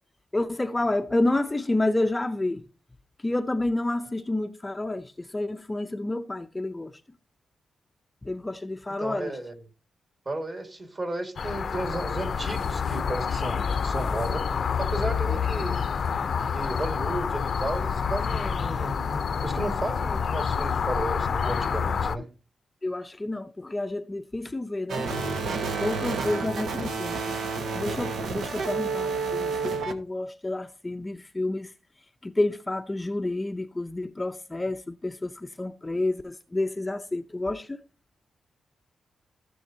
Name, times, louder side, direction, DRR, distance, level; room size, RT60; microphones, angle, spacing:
voice 1, 0.3-2.6 3.2-7.0 8.2-9.3 15.3-15.4 22.8-25.1 25.8-27.4 27.7-31.7 32.2-37.8, left 2 dB, 15° left, 0.5 m, -29 dB
voice 2, 9.0-9.6 10.3-15.8 16.5-22.3, right 2 dB, 35° right, 2.0 m, -34 dB
sound 1, 11.4-22.2, left 6 dB, 55° left, 0.6 m, -28 dB
sound 2, 24.9-29.9, right 4 dB, 85° right, 1.3 m, -30 dB
16.0 x 7.0 x 2.8 m
cardioid pair, 110°, 0 cm